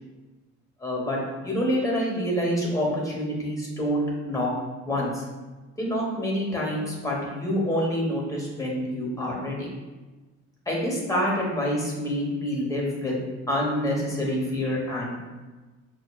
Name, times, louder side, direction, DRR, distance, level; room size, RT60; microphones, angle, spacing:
voice 1, 0.8-4.5 4.8-5.2 5.8-9.7 10.7-15.3, equal, 10° left, -3 dB, 1.1 m, -27 dB
5.5 x 2.4 x 2.3 m, 1.2 s
cardioid pair, 90°, 30 cm